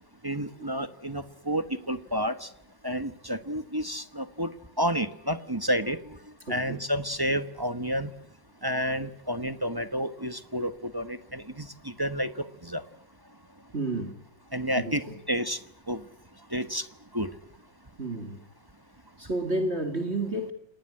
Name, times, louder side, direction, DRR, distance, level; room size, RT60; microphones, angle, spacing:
voice 1, 0.2-2.5 2.8-8.1 8.6-12.8 14.5-16.0 16.5-16.9 17.1-17.3, equal, 15° right, 1.0 m, -30 dB
voice 2, 6.5-6.8 13.7-14.2 14.8-15.2 18.0-18.4 19.2-20.5, right 2 dB, 35° right, 2.8 m, -31 dB
29.5 x 19.5 x 10.0 m
omnidirectional pair, 2.0 m